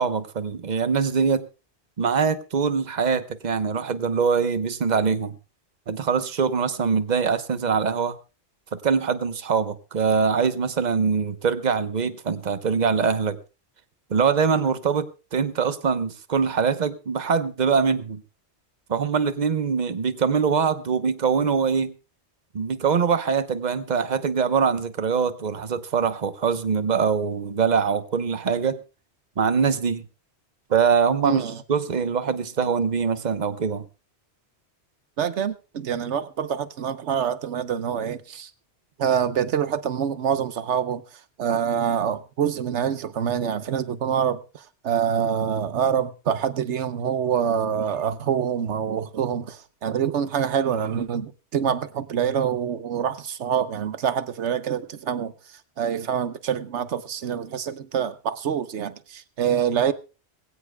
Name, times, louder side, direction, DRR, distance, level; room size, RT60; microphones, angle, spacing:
voice 1, 0.0-1.4 2.0-5.3 5.9-8.2 8.7-13.4 14.1-15.1 15.3-18.2 18.9-21.9 22.5-28.8 29.4-30.0 30.7-31.4 31.7-33.8, right 6 dB, 40° right, 1.0 m, -23 dB
voice 2, 31.2-31.6 35.2-38.5 39.0-41.0 41.4-55.3 55.8-59.9, right 8 dB, 85° right, 1.2 m, -26 dB
21.5 x 16.5 x 2.3 m
omnidirectional pair, 1.1 m